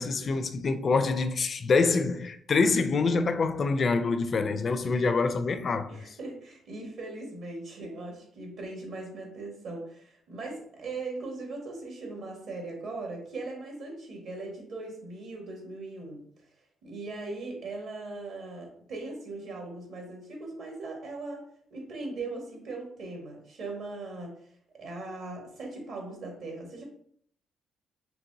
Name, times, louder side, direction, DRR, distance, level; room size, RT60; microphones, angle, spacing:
voice 1, 0.0-6.2, left 4 dB, 45° left, 0.4 m, -26 dB
voice 2, 5.9-16.2 16.8-21.4 21.7-24.3 24.8-26.8, right 2 dB, 70° right, 1.5 m, -39 dB
4.6 x 3.1 x 2.7 m
cardioid pair, 90°, 0 cm